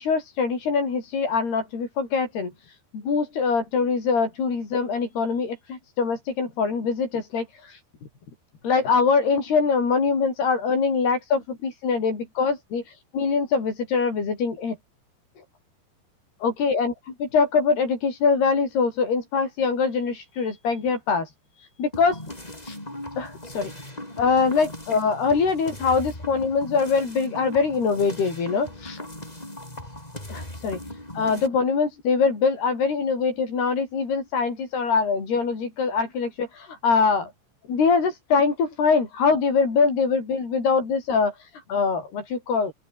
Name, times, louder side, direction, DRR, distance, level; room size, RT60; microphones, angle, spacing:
voice 1, 0.0-7.8 8.6-14.8 15.4-15.5 16.4-16.9 17.2-22.3 22.6-22.8 23.2-23.7 24.2-29.1 30.3-37.3 37.7-42.7, left 5 dB, 70° left, 8.2 m, -23 dB
sound 1, 21.9-31.5, left 1 dB, 10° left, 5.5 m, -38 dB
open air
omnidirectional pair, 4.9 m